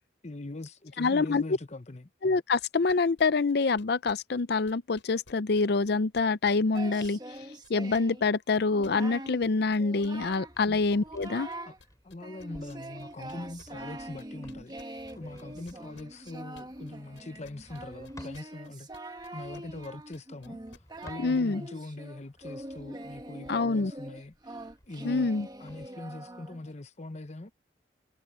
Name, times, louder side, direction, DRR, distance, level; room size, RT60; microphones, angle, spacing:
voice 1, 0.2-2.1 10.6-10.8 11.6-11.8 12.0-24.6 24.9-25.3 25.6-27.5, left 2 dB, 35° left, 0.9 m, -42 dB
voice 2, 1.0-1.4 2.2-7.2 7.7-11.5 21.2-21.6 23.5-23.9 25.0-25.5, left 4 dB, 55° left, 0.5 m, -26 dB
sound 1, 2.6-7.4 7.6-16.9 17.1-21.1, left 3 dB, 85° left, 5.7 m, -55 dB
Singing, 6.7-8.2 8.6-9.4 9.8-10.6 10.9-11.8 12.2-26.7, right 1 dB, 20° right, 1.3 m, -43 dB
sound 2, 10.2-18.5 19.3-21.7 22.2-25.9, left 1 dB, 20° left, 3.5 m, -57 dB
head